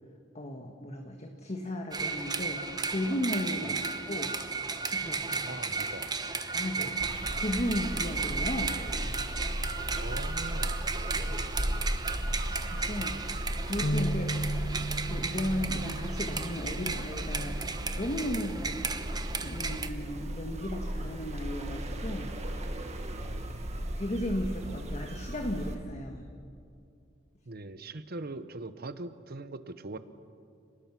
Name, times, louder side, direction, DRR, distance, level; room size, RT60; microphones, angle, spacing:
voice 1, 0.3-3.8 4.1-4.4 4.8-5.6 6.5-6.9 7.4-8.8 11.2-11.5 12.6-13.2 13.6-14.3 15.0-17.6 18.0-19.1 19.4-22.3 23.9-26.3, left 1 dB, 35° left, 3 dB, 1.5 m, -35 dB
sound 1, 1.9-19.9, right 4 dB, 20° right, 1.0 m, -35 dB
voice 2, 5.4-6.2 6.8-7.0 9.9-10.9 14.2-14.4 23.1-23.8 27.5-30.0, right 2 dB, 55° right, 12 dB, 1.0 m, -42 dB
sound 2, 7.0-25.8, equal, 35° right, 1.7 m, -36 dB
sound 3, 13.8-20.1, right 1 dB, 55° left, 0.7 m, -38 dB
30.0 x 19.5 x 6.1 m, 2.4 s
head